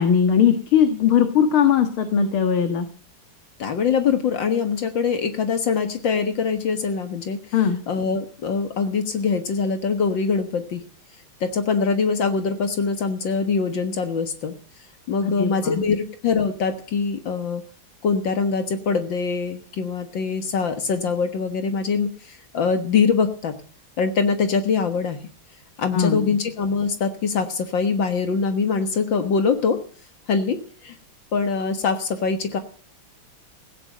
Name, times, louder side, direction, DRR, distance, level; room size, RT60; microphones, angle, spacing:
voice 1, 0.0-2.9 7.5-7.8 15.2-15.8 25.9-26.3, left 8 dB, 85° left, 7 dB, 2.5 m, -19 dB
voice 2, 3.6-7.4 7.9-10.8 11.4-14.5 15.1-17.6 18.0-23.6 24.0-25.2 25.8-29.8 30.3-31.0 31.3-32.6, left 5 dB, 65° left, 8 dB, 2.1 m, -23 dB
16.5 x 9.8 x 7.8 m, 0.42 s
omnidirectional pair, 2.2 m